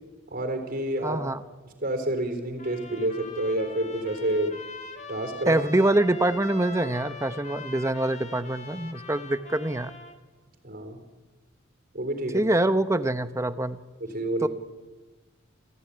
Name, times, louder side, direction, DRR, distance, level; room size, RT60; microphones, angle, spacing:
voice 1, 0.3-1.2 1.8-4.5 5.1-5.6 10.6-11.0 11.9-12.4 14.0-14.5, right 1 dB, 45° right, 6 dB, 4.1 m, -28 dB
voice 2, 1.0-1.4 5.5-9.9 12.3-13.8 14.4-14.5, right 1 dB, 15° right, 12 dB, 0.9 m, -25 dB
Trumpet, 2.6-10.2, left 3 dB, 35° left, 2.0 m, -42 dB
28.0 x 15.5 x 9.9 m, 1.3 s
head